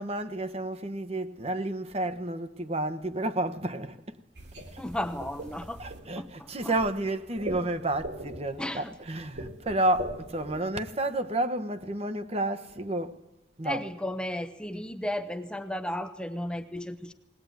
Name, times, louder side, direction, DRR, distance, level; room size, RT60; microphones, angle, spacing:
voice 1, 0.0-4.2 4.7-4.8 5.8-13.1 13.6-13.8, right 1 dB, 35° right, 1.2 m, -31 dB
sound 1, 4.3-10.6, right 1 dB, 65° right, 3.7 m, -41 dB
voice 2, 4.8-5.8 6.2-6.7 8.6-8.9 13.6-17.1, left 1 dB, 5° left, 0.8 m, -34 dB
20.5 x 19.5 x 9.4 m
head